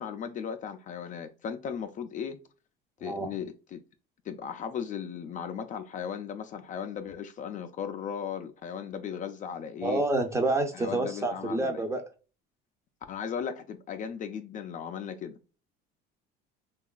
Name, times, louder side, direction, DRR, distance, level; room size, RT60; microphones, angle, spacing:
voice 1, 0.0-2.4 3.0-3.8 4.3-10.0 10.7-11.8 13.1-15.3, left 7 dB, 40° left, 0.4 m, -36 dB
voice 2, 3.0-3.3 9.8-12.0, right 2 dB, 15° right, 0.5 m, -28 dB
2.8 x 2.3 x 2.2 m
supercardioid pair, 105°, 20 cm